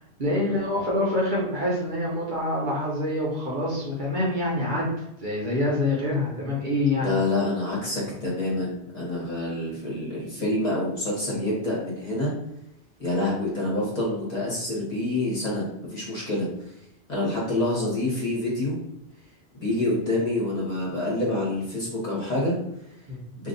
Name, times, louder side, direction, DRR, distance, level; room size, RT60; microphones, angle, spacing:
voice 1, 0.2-4.9 5.2-7.2 23.1-23.2, left 1 dB, 50° right, -4 dB, 1.0 m, -26 dB
voice 2, 7.0-12.3 13.0-16.5 17.1-18.8 19.5-22.5, left 2 dB, 40° left, -5 dB, 1.2 m, -27 dB
2.7 x 2.5 x 3.8 m, 0.82 s
omnidirectional pair, 1.1 m